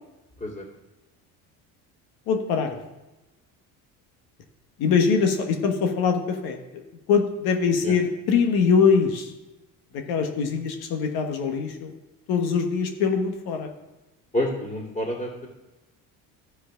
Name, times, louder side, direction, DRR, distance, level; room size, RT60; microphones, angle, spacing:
voice 1, 2.3-2.8 4.8-6.8 7.1-9.3 9.9-11.9 12.3-13.7, left 5 dB, 70° left, 4 dB, 1.4 m, -23 dB
voice 2, 14.3-15.5, left 1 dB, 20° left, -7 dB, 2.4 m, -28 dB
14.0 x 4.8 x 3.8 m, 1.1 s
supercardioid pair, 90°, 38 cm